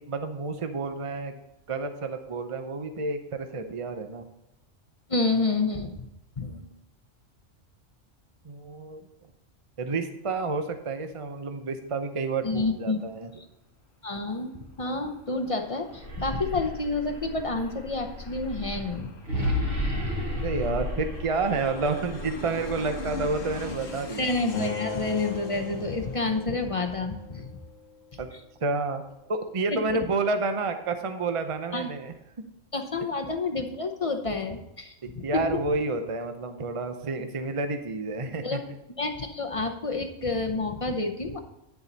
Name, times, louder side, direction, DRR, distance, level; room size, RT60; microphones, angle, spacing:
voice 1, 0.0-1.4 1.7-4.2 6.4-6.7 8.4-9.1 9.8-13.3 20.4-24.3 28.2-28.3 28.6-29.0 29.3-32.1 35.2-38.6, right 3 dB, 35° right, 7 dB, 0.6 m, -30 dB
voice 2, 5.1-6.1 6.4-6.5 12.4-13.0 13.4-13.5 14.0-19.1 24.2-27.5 28.3-28.4 29.7-30.0 31.7-31.9 32.7-35.6 38.4-38.6 39.0-41.4, left 3 dB, 30° left, 5 dB, 0.7 m, -29 dB
Aircraft, 14.2-27.3, left 3 dB, 45° left, 1.2 m, -43 dB
sound 1, 15.8-24.0, left 1 dB, 65° right, 2.4 m, -33 dB
Acoustic guitar, 24.5-27.8, left 4 dB, 80° left, 1.2 m, -38 dB
10.0 x 7.0 x 4.0 m, 0.92 s
omnidirectional pair, 1.3 m